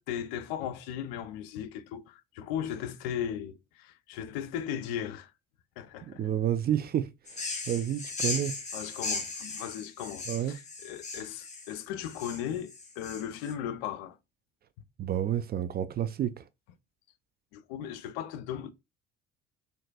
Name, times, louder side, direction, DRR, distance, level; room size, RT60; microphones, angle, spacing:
voice 1, 0.0-5.3 5.8-6.2 8.7-14.2 17.5-18.7, left 9 dB, 70° left, 0.6 m, -37 dB
voice 2, 6.1-7.1 7.7-8.6 10.3-10.5 15.0-16.4, right 10 dB, 30° right, 0.4 m, -29 dB
sound 1, 7.3-13.5, left 3 dB, 20° left, 1.1 m, -37 dB
3.8 x 2.6 x 2.2 m
hypercardioid pair, 60°, 31 cm